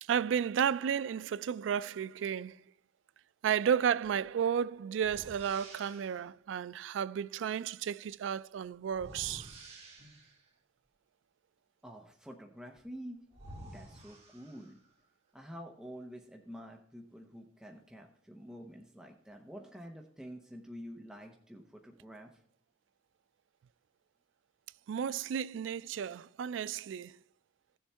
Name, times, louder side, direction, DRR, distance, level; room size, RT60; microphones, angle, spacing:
voice 1, 0.0-2.6 3.4-9.5 24.9-27.2, right 8 dB, 90° right, 0.3 m, -33 dB
sound 1, 4.0-4.2 5.0-6.2 8.9-10.5 12.8-12.9 13.3-14.9, right 1 dB, 35° right, 2.2 m, -51 dB
voice 2, 11.8-13.2 13.7-14.8 15.3-22.4, equal, 5° right, 0.8 m, -48 dB
16.0 x 7.1 x 3.4 m
head